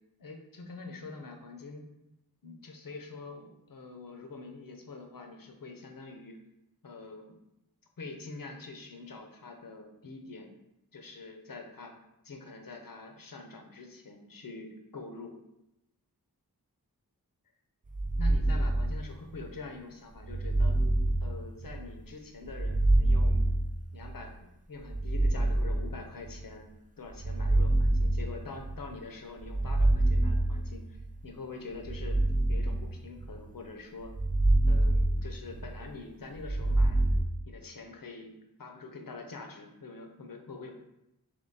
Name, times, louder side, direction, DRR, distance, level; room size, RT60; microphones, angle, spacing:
voice 1, 0.2-1.9 2.4-6.4 6.8-7.4 8.0-10.5 10.9-11.9 12.2-15.4 18.2-20.8 21.2-23.5 23.9-26.7 27.0-32.2 32.5-34.2 34.7-37.0 37.5-38.3 38.6-40.7, left 3 dB, 60° left, 4 dB, 0.7 m, -45 dB
sound 1, 17.9-19.4 20.2-21.9 22.5-24.3 24.9-26.4 27.1-28.9 29.4-31.1 31.8-33.5 34.0-35.8 36.4-37.2, right 2 dB, 25° right, 0.3 m, -27 dB
3.7 x 3.1 x 4.0 m, 0.86 s
wide cardioid pair, 65°, 38 cm